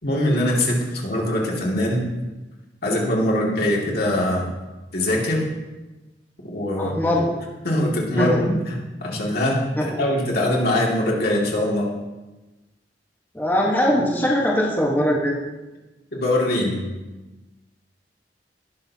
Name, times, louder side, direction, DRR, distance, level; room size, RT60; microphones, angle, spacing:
voice 1, 0.0-2.1 2.8-4.5 4.9-5.5 6.5-7.0 7.6-11.9 16.1-16.9, left 1 dB, 60° left, -3 dB, 2.3 m, -22 dB
voice 2, 6.8-7.3 8.2-8.4 9.8-10.0 13.3-15.4, equal, 10° left, -4 dB, 1.3 m, -21 dB
18.0 x 6.6 x 2.8 m, 1.1 s
head